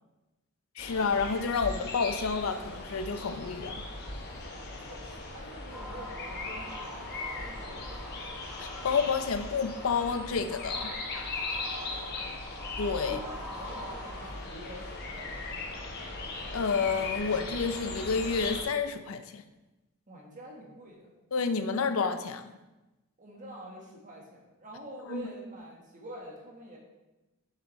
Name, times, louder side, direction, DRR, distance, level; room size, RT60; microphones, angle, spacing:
voice 1, 0.8-3.8 8.6-10.9 12.8-13.2 16.5-19.4 21.3-22.5 25.1-25.2, left 5 dB, 70° left, 9 dB, 0.5 m, -30 dB
sound 1, 0.8-18.6, left 2 dB, 50° left, 1.0 m, -39 dB
voice 2, 4.5-8.1 12.0-12.5 13.0-15.9 20.1-21.1 23.2-26.8, equal, 35° right, -2 dB, 1.4 m, -47 dB
sound 2, 5.7-14.3, left 1 dB, ahead, 1.4 m, -44 dB
6.9 x 6.6 x 3.1 m, 1.1 s
head